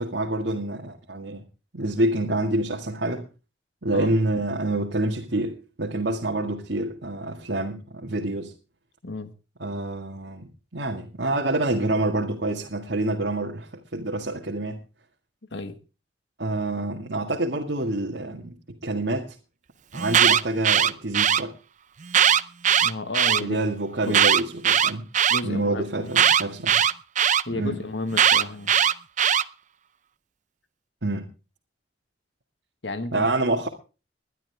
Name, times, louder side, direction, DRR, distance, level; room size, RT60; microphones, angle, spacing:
voice 1, 0.0-1.5 1.7-3.3 3.8-8.5 9.6-14.8 16.4-19.4 19.9-21.5 23.4-25.1 25.4-26.8 27.5-27.8 31.0-31.3 33.1-33.7, right 2 dB, 75° right, 1.9 m, -27 dB
voice 2, 9.0-9.3 15.5-15.8 22.8-23.6 24.1-24.3 25.3-26.1 27.4-28.7 32.8-33.3, left 2 dB, 80° left, 1.6 m, -32 dB
Alarm, 19.9-21.4 22.1-23.4 24.1-25.4 26.1-27.4 28.1-29.4, right 9 dB, 45° right, 0.6 m, -19 dB
21.0 x 11.5 x 3.4 m
head